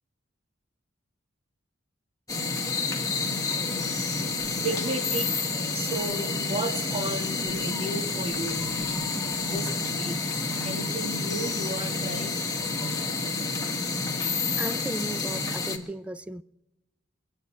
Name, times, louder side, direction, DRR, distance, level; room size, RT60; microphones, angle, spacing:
sound 1, 2.3-15.8, left 3 dB, 15° left, 1.5 m, -29 dB
voice 1, 3.8-8.8 9.3-10.2 10.6-12.5, right 2 dB, 30° right, 2.0 m, -34 dB
voice 2, 14.6-16.4, right 1 dB, 5° right, 0.4 m, -35 dB
24.5 x 8.6 x 5.7 m
head